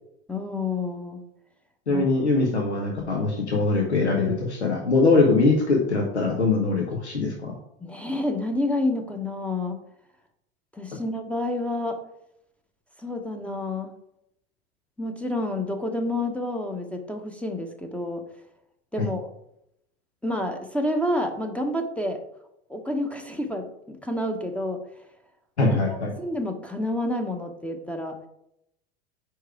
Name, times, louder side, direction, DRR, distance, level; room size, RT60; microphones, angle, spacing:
voice 1, 0.3-1.2 1.9-2.1 7.8-9.8 10.7-12.0 13.0-13.9 15.0-18.2 18.9-19.3 20.2-22.2 22.7-24.8 26.2-28.1, left 1 dB, 5° left, 4 dB, 0.7 m, -29 dB
voice 2, 1.9-7.5 19.0-19.1 25.6-26.1, left 3 dB, 90° left, 0 dB, 1.0 m, -22 dB
4.8 x 4.6 x 4.6 m, 0.79 s
figure-of-eight pair, 80°, 33 cm